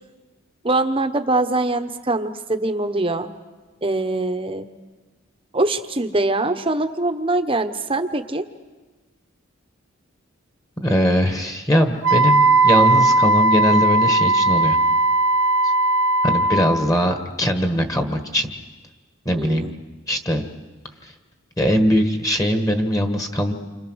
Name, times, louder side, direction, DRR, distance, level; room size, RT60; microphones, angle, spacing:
voice 1, 0.6-3.3 3.8-4.7 5.5-8.5 19.3-19.7, right 2 dB, 25° right, 8 dB, 1.1 m, -23 dB
voice 2, 10.8-14.8 16.2-18.5 19.2-19.7 20.1-20.4 21.0-21.1 21.6-23.5, equal, 15° left, 6 dB, 1.5 m, -21 dB
Wind instrument woodwind instrument, 12.0-16.8, right 2 dB, 60° right, 1.4 m, -17 dB
29.0 x 26.0 x 6.4 m, 1.3 s
head